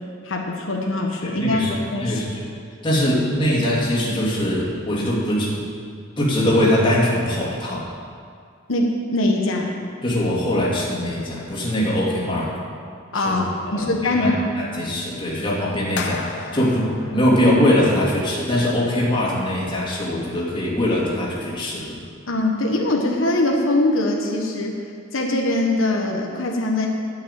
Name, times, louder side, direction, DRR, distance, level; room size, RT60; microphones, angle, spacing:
voice 1, 0.2-1.6 1.9-2.2 8.7-9.7 13.1-14.4 22.3-24.7 25.1-26.9, left 2 dB, 85° left, 0 dB, 1.3 m, -22 dB
voice 2, 1.2-2.4 2.8-5.6 6.2-7.9 10.0-12.6 13.1-22.0, left 1 dB, 25° left, -5 dB, 2.6 m, -22 dB
sound 1, 16.0-18.2, left 5 dB, 60° left, 0.8 m, -34 dB
10.5 x 6.5 x 9.0 m, 2.2 s
head